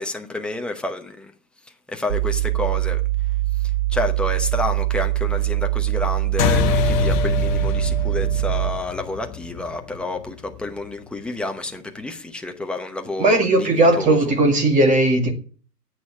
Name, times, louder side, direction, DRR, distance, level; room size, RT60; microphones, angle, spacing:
voice 1, 0.0-1.3 1.9-3.0 3.6-14.3, left 2 dB, ahead, 0.8 m, -29 dB
sound 1, 2.1-8.9, right 17 dB, 30° right, 0.6 m, -23 dB
sound 2, 6.4-11.2, left 9 dB, 30° left, 1.2 m, -25 dB
voice 2, 13.2-15.3, right 2 dB, 15° right, 2.2 m, -17 dB
9.4 x 8.5 x 9.5 m
hypercardioid pair, 130°, 48 cm